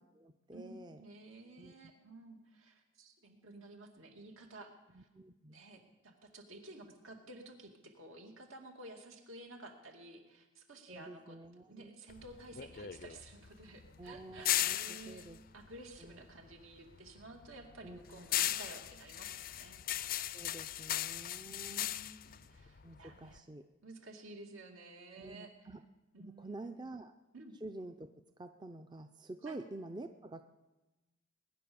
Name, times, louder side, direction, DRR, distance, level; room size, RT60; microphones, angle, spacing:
voice 1, 0.0-1.0 1.6-1.9 4.9-5.6 10.9-12.0 14.0-15.4 16.0-16.2 17.8-18.5 20.3-21.9 22.8-23.6 25.2-25.8 26.2-27.1 27.6-30.4, right 2 dB, 20° right, 8 dB, 0.5 m, -49 dB
voice 2, 0.5-4.7 5.0-5.1 5.5-11.4 11.7-15.3 15.5-19.8 21.5-23.4 23.8-25.5 26.1-26.8 27.3-27.6 29.4-29.6, right 2 dB, 80° right, 3 dB, 2.4 m, -53 dB
sound 1, 12.1-16.6 16.9-23.4, left 13 dB, 45° left, 0.4 m, -37 dB
20.0 x 10.0 x 6.9 m, 1.1 s
head